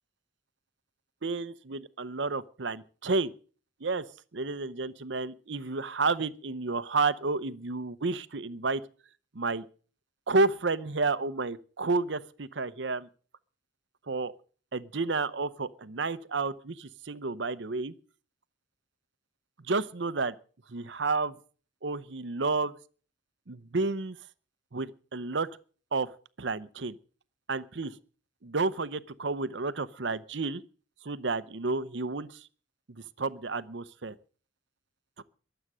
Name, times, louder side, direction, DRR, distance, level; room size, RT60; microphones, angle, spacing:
voice 1, 1.2-3.3 3.8-4.0 4.3-8.8 9.3-9.6 10.3-13.1 14.1-14.3 14.7-17.9 19.6-20.3 20.7-21.3 21.8-22.7 23.5-24.2 24.7-25.5 25.9-26.1 26.4-27.0 27.5-28.0 28.4-30.6 31.0-32.4 33.2-34.1 35.2-35.3, right 3 dB, 70° right, 14 dB, 0.8 m, -31 dB
22.5 x 8.0 x 6.2 m, 0.40 s
head